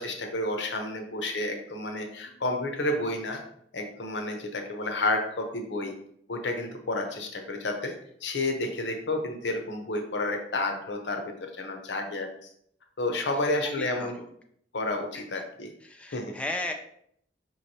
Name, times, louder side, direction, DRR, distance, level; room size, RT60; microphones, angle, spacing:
voice 1, 0.0-3.4 3.7-5.9 6.3-7.9 8.2-12.3 13.0-14.2 14.7-15.7 16.1-16.3, left 2 dB, 90° left, 4 dB, 0.7 m, -30 dB
voice 2, 2.1-2.4 13.6-14.3 15.8-16.7, left 2 dB, 5° left, 3 dB, 0.3 m, -36 dB
5.0 x 3.1 x 2.7 m, 0.68 s
head